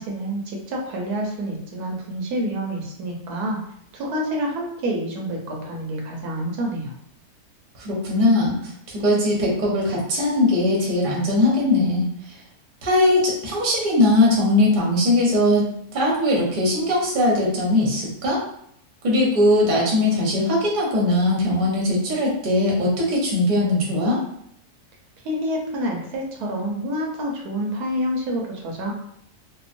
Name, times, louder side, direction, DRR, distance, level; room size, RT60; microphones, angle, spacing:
voice 1, 0.0-3.6 3.9-6.9 25.2-28.9, equal, 85° right, 0 dB, 1.2 m, -28 dB
voice 2, 7.8-8.5 8.9-12.1 12.8-18.4 19.0-24.2, left 1 dB, 40° right, -4 dB, 0.7 m, -20 dB
2.9 x 2.0 x 2.5 m, 0.71 s
omnidirectional pair, 1.6 m